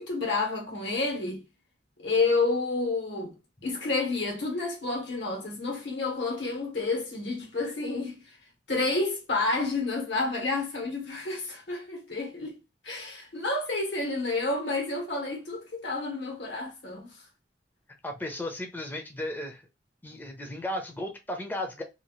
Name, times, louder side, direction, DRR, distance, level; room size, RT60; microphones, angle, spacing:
voice 1, 0.0-1.4 2.0-3.3 3.6-8.2 8.7-12.6 12.8-17.1, left 3 dB, 85° left, 1.3 m, -29 dB
voice 2, 18.0-19.6 20.0-21.8, left 1 dB, 10° left, 0.5 m, -35 dB
2.7 x 2.4 x 2.9 m
head